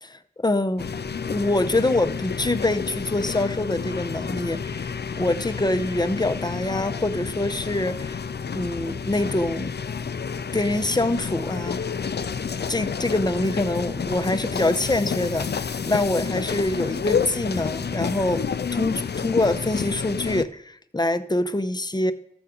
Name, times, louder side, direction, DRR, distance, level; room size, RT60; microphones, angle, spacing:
voice 1, 0.0-0.9 1.2-8.2 8.5-9.8 10.5-11.8 12.7-15.5 15.8-18.5 18.7-22.1, left 2 dB, 25° left, 10 dB, 0.6 m, -25 dB
sound 1, 0.8-20.4, left 6 dB, 80° left, 0.4 m, -30 dB
12.5 x 6.9 x 3.8 m, 0.72 s
wide cardioid pair, 40°, 17 cm